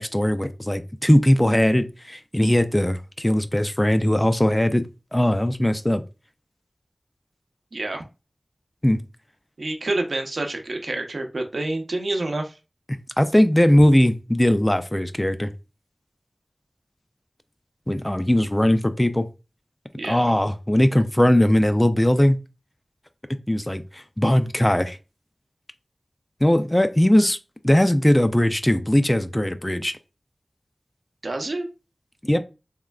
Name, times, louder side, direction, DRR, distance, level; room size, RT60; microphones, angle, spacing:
voice 1, 0.0-4.8 5.1-6.0 8.8-9.0 13.2-15.5 17.9-19.3 20.1-22.4 23.5-25.0 26.4-27.4 27.6-29.9 32.2-32.4, left 1 dB, 15° left, 0.4 m, -19 dB
voice 2, 7.7-8.0 9.6-12.5 20.0-20.3 31.2-31.7, right 2 dB, 90° right, 0.6 m, -28 dB
3.6 x 3.2 x 2.2 m
wide cardioid pair, 65°, 0 cm